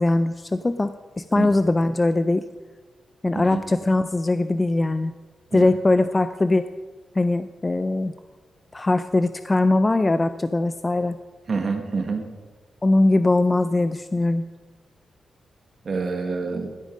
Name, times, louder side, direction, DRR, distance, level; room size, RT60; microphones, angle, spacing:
voice 1, 0.0-2.4 3.2-5.1 5.5-6.7 7.2-8.1 8.7-11.2 12.8-14.4, left 2 dB, 20° left, 11 dB, 0.4 m, -21 dB
voice 2, 11.5-12.2 15.8-16.7, right 4 dB, 50° right, 4 dB, 1.3 m, -27 dB
15.0 x 8.9 x 5.2 m, 1.4 s
wide cardioid pair, 120°, 0 cm